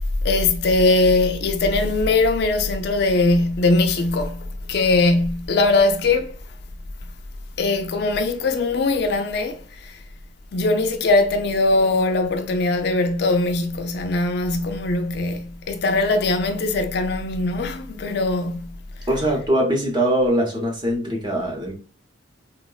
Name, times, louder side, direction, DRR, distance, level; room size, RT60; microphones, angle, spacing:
voice 1, 0.2-6.3 7.6-10.0 10.5-18.8, left 2 dB, 55° left, 0.4 m, -21 dB
voice 2, 19.1-21.7, right 1 dB, 25° right, 0.7 m, -22 dB
3.7 x 2.1 x 2.2 m
head